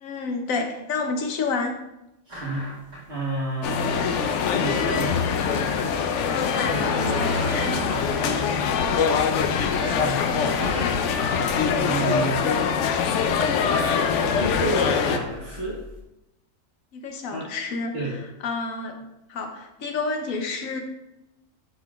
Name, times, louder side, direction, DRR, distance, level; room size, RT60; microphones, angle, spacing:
voice 1, 0.0-1.8 6.3-7.8 16.9-19.0 19.3-20.8, left 4 dB, 85° left, 4 dB, 1.2 m, -30 dB
sound 1, 2.3-3.2 3.7-3.8 4.1-4.2 5.7-8.6 9.0-9.1 9.4-11.3 11.9-12.0 12.9-13.1 14.0-14.1 14.4-16.0, left 1 dB, 35° right, 2.0 m, -34 dB
voice 2, 2.3-2.7 3.1-4.1 4.6-5.4 7.9-8.1 8.5-9.3 9.7-10.6 11.5-12.5 14.3-15.8 17.3-17.5 17.9-18.2, right 1 dB, 55° right, -7 dB, 1.5 m, -31 dB
sound 2, 3.6-15.2, left 6 dB, 70° left, 0.8 m, -23 dB
10.5 x 3.8 x 2.3 m, 0.89 s
omnidirectional pair, 1.4 m